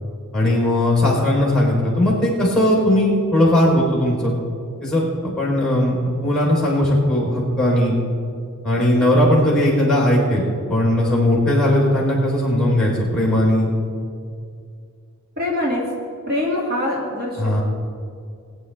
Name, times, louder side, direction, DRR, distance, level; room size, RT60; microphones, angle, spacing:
voice 1, 0.3-4.3 4.8-7.9 8.6-13.7 17.4-17.6, left 1 dB, 5° left, -4 dB, 3.3 m, -18 dB
voice 2, 15.4-15.8 16.3-17.6, left 1 dB, 45° right, -3 dB, 2.1 m, -23 dB
21.0 x 9.8 x 3.3 m, 2.3 s
head